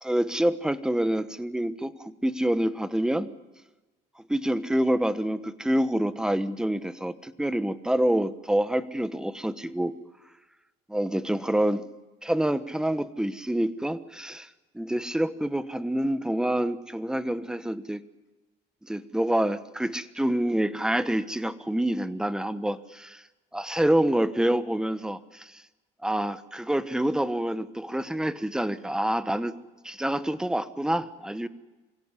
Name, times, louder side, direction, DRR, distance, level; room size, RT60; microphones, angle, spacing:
voice 1, 0.0-3.3 4.3-9.9 10.9-11.9 12.2-14.5 14.7-18.0 18.8-23.2 23.5-25.6 26.0-29.6 29.8-31.5, right 1 dB, 5° right, 14 dB, 1.1 m, -27 dB
24.5 x 17.0 x 9.8 m, 1.2 s
cardioid pair, 110°, 17 cm